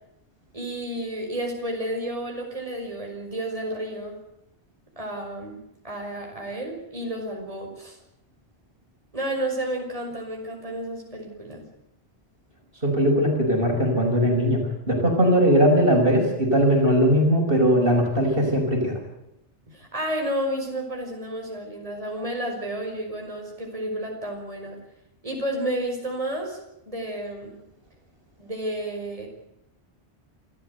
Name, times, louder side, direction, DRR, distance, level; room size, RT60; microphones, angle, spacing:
voice 1, 0.5-4.2 5.0-5.6 5.8-8.0 9.1-11.7 19.7-24.8 25.2-26.6 26.9-27.6 28.4-29.3, right 1 dB, 30° right, 1 dB, 5.7 m, -31 dB
voice 2, 12.8-14.6 14.9-19.0, equal, 55° right, 2 dB, 6.1 m, -20 dB
29.0 x 14.0 x 8.1 m, 0.86 s
omnidirectional pair, 1.1 m